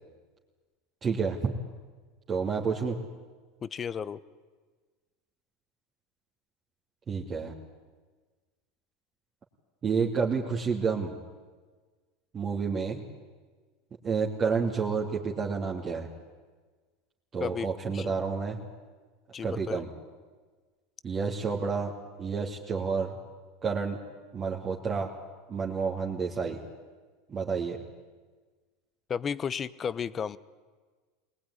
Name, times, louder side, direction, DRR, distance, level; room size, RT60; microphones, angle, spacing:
voice 1, 1.0-1.5 2.3-3.0 7.1-7.5 9.8-11.2 12.3-13.0 14.0-16.1 17.3-18.6 19.4-19.9 21.0-21.9 22.2-23.1 23.6-24.0 24.3-25.1 25.5-26.6 27.3-27.8, right 5 dB, 30° right, -3 dB, 2.8 m, -29 dB
voice 2, 3.6-4.2 17.4-17.7 17.9-18.1 19.3-19.8 29.1-30.4, left 7 dB, 30° left, 17 dB, 1.0 m, -33 dB
23.0 x 19.0 x 10.0 m, 1.4 s
hypercardioid pair, 95°, 0 cm